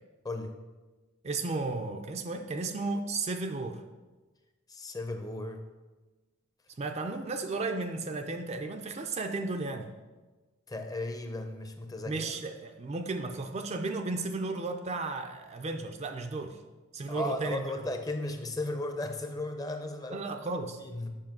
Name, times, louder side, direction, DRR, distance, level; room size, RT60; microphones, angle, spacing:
voice 1, 1.2-3.8 6.8-9.9 12.1-16.6 16.9-17.7 20.1-20.8, right 3 dB, 30° right, 6 dB, 0.4 m, -34 dB
voice 2, 4.7-5.6 10.7-12.3 17.1-20.3 20.8-21.1, left 2 dB, 15° left, 5 dB, 0.6 m, -35 dB
7.3 x 4.9 x 5.9 m, 1.2 s
head